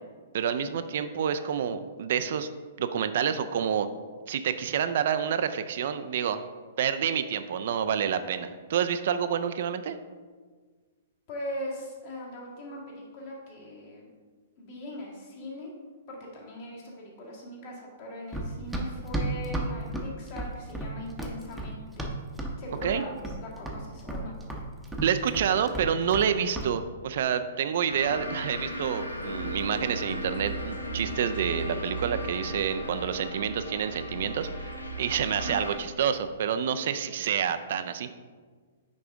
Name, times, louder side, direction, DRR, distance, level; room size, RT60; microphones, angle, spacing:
voice 1, 0.3-2.5 2.8-3.9 4.3-6.4 6.8-10.0 22.8-23.0 25.0-38.1, right 8 dB, 55° right, 10 dB, 0.3 m, -28 dB
voice 2, 11.3-14.1 14.6-15.7 16.1-22.1 22.6-24.3 35.3-35.6, left 1 dB, 45° left, -3 dB, 1.9 m, -40 dB
Run, 18.3-22.6 22.8-23.4 23.7-26.3 26.5-26.7, right 1 dB, 5° right, 0.8 m, -33 dB
sound 1, 27.9-35.8, right 1 dB, 90° left, 0.7 m, -36 dB
6.0 x 4.9 x 3.6 m, 1.5 s
figure-of-eight pair, 110°, 0 cm